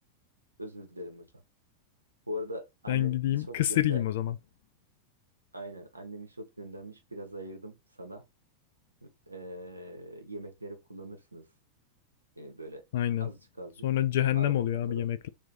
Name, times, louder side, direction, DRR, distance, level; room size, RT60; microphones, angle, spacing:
voice 1, 0.6-1.3 2.3-4.1 5.5-8.2 9.0-11.5 12.4-12.8 13.2-13.9 14.3-15.0, equal, 85° right, 0.8 m, -42 dB
voice 2, 2.9-4.4 12.9-13.3 13.8-15.3, left 12 dB, 55° left, 0.4 m, -27 dB
2.8 x 2.5 x 3.6 m
figure-of-eight pair, 90°, 0 cm